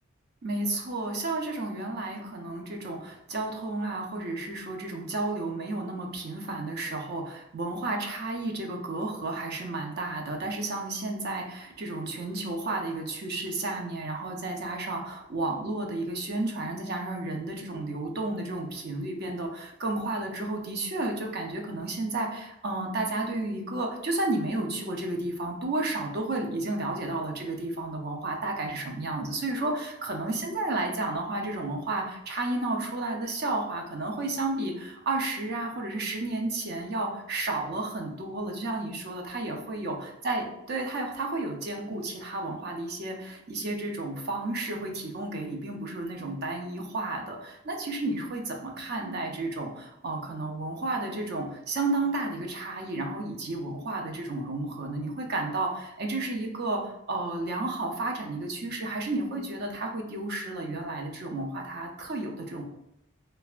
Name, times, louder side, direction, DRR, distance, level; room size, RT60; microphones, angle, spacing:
voice 1, 0.4-62.6, right 2 dB, 55° right, 2 dB, 0.5 m, -32 dB
3.2 x 2.1 x 2.4 m, 0.82 s
head